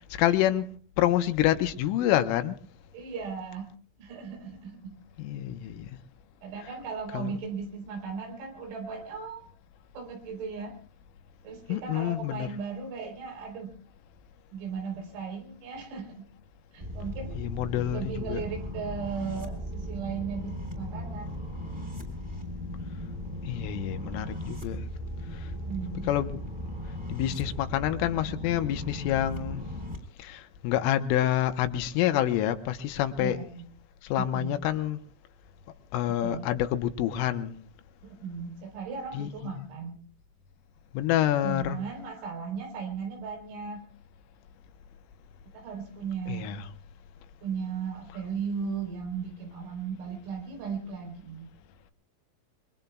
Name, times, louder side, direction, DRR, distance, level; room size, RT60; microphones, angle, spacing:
voice 1, 0.2-0.7 1.0-2.6 5.2-5.9 7.1-7.3 11.7-12.5 17.4-18.4 23.5-24.9 26.1-26.4 27.1-29.6 30.2-33.4 34.1-35.0 35.9-37.6 39.1-39.3 40.9-41.8 46.3-46.6, left 12 dB, 80° left, 3.4 m, -27 dB
voice 2, 2.9-3.7 4.0-5.0 6.4-9.4 9.9-10.7 11.4-13.8 14.5-16.3 16.7-17.4 17.9-21.4 25.6-26.1 33.1-33.7 34.2-34.5 36.2-36.5 38.0-40.0 41.4-43.8 45.5-46.5 47.4-51.5, right 6 dB, 85° right, 6.6 m, -36 dB
sound 1, 16.8-30.0, left 1 dB, 15° right, 2.8 m, -37 dB
26.5 x 23.0 x 2.3 m
omnidirectional pair, 5.9 m